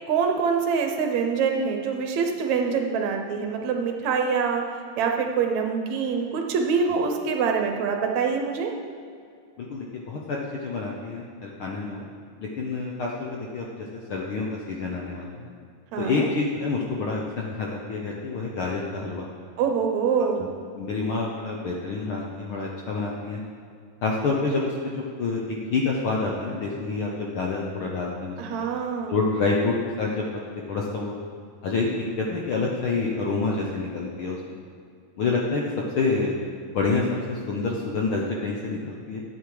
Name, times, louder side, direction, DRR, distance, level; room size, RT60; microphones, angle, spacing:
voice 1, 0.1-4.6 5.0-8.7 15.9-16.3 19.6-20.5 28.4-29.2, right 6 dB, 70° right, 3 dB, 2.2 m, -25 dB
voice 2, 9.6-12.1 12.4-15.5 16.0-19.3 20.4-20.5 20.7-23.4 24.0-28.6 29.1-30.2 30.7-31.2 31.6-31.9 32.2-34.4 35.2-36.3 36.7-39.2, left 3 dB, 65° left, -2 dB, 1.4 m, -28 dB
12.5 x 8.4 x 4.8 m, 2.3 s
omnidirectional pair, 3.4 m